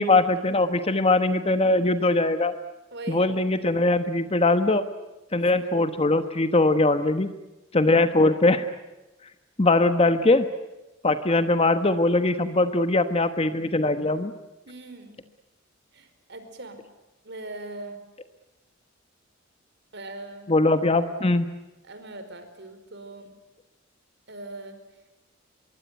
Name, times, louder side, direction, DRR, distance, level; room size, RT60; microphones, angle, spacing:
voice 1, 0.0-2.5 3.1-4.8 5.3-7.3 7.7-8.6 9.6-10.5 11.0-14.3 20.5-21.5, left 2 dB, 30° left, 10 dB, 1.2 m, -21 dB
voice 2, 2.9-3.5 7.9-8.0 14.7-15.2 15.9-16.8 17.2-18.0 19.9-20.6 21.8-23.3 24.3-24.8, right 2 dB, 60° right, 9 dB, 4.7 m, -40 dB
25.0 x 23.0 x 9.4 m, 1.0 s
head